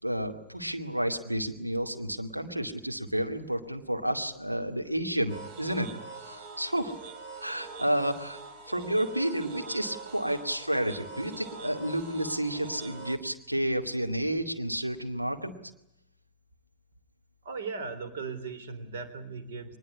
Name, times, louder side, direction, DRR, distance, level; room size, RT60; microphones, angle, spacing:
voice 1, 0.0-5.9 6.2-6.9 7.4-8.4 8.7-15.6, right 1 dB, 85° right, 5 dB, 2.3 m, -31 dB
sound 1, 5.3-13.2, right 4 dB, 45° right, 2.8 m, -44 dB
voice 2, 17.4-19.8, right 4 dB, 60° right, 10 dB, 3.7 m, -37 dB
23.0 x 21.0 x 9.7 m, 0.81 s
figure-of-eight pair, 90°, 0 cm